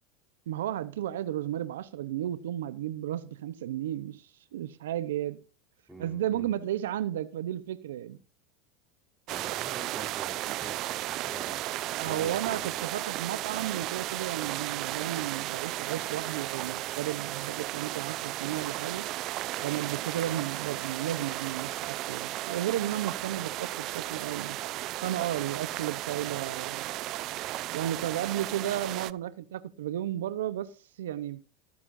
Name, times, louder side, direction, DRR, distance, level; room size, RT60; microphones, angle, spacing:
voice 1, 0.5-5.4 6.0-8.2 12.0-19.1 19.6-24.6 25.0-26.9 27.7-31.4, right 12 dB, 85° right, 0.8 m, -33 dB
voice 2, 5.9-6.5 9.3-11.6 12.0-12.8, right 1 dB, ahead, 4.1 m, -47 dB
sound 1, 9.3-29.1, right 16 dB, 55° right, 0.5 m, -35 dB
18.5 x 9.5 x 2.6 m
hypercardioid pair, 100°, 0 cm